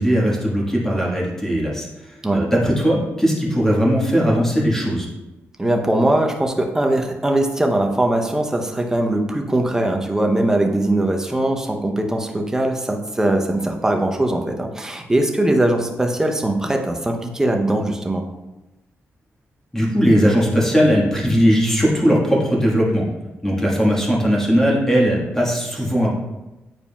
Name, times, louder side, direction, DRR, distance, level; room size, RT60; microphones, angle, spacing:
voice 1, 0.0-5.1 19.7-23.0 23.4-26.1, equal, 10° left, -4 dB, 1.5 m, -18 dB
voice 2, 5.6-18.2, right 1 dB, 10° right, 2 dB, 0.7 m, -20 dB
8.9 x 4.7 x 2.3 m, 1.0 s
cardioid pair, 120°, 5 cm